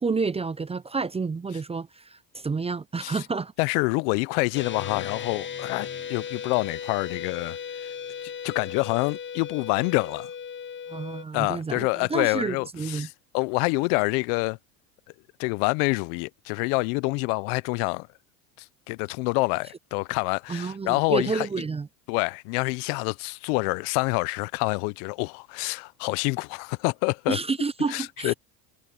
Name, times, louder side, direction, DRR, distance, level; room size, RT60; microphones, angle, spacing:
voice 1, 0.0-3.5 10.9-13.1 20.5-21.9 27.3-28.3, right 4 dB, 15° right, 0.5 m, -29 dB
voice 2, 3.6-7.9 8.4-10.3 11.3-14.6 15.4-18.1 18.6-21.5 22.1-27.4 27.9-28.3, left 29 dB, 75° left, 0.7 m, -27 dB
sound 1, 4.5-11.2, left 7 dB, 25° left, 0.8 m, -36 dB
supercardioid pair, 95°, 46 cm